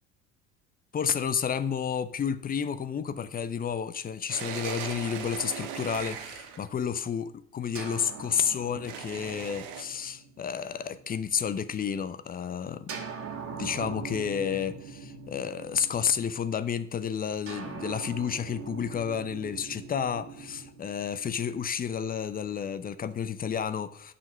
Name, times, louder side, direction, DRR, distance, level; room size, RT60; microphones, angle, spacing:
voice 1, 0.9-12.9 13.6-24.1, left 7 dB, 20° left, 12 dB, 0.7 m, -31 dB
sound 1, 4.3-6.7 8.9-9.8, right 8 dB, 55° right, 1.3 m, -38 dB
sound 2, 7.7-11.5 12.9-16.4 17.5-21.6, right 5 dB, 35° right, 2.2 m, -42 dB
7.0 x 5.8 x 7.3 m, 0.65 s
figure-of-eight pair, 65°, 39 cm